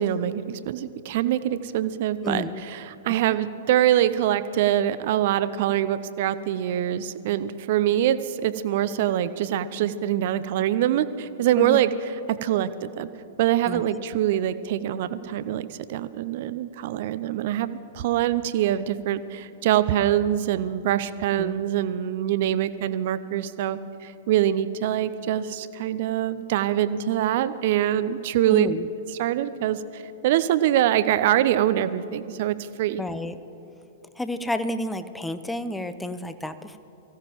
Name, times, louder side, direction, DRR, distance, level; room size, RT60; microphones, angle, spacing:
voice 1, 0.0-2.4 2.7-11.9 12.3-13.1 13.4-28.7 29.2-33.0, right 11 dB, 50° right, 14 dB, 0.6 m, -24 dB
voice 2, 2.2-2.6 11.6-11.8 13.7-13.8 21.4-21.6 28.5-28.9 33.0-33.4 34.2-36.8, left 1 dB, 5° left, 11 dB, 0.7 m, -30 dB
24.0 x 15.5 x 3.0 m, 2.9 s
figure-of-eight pair, 105°, 0 cm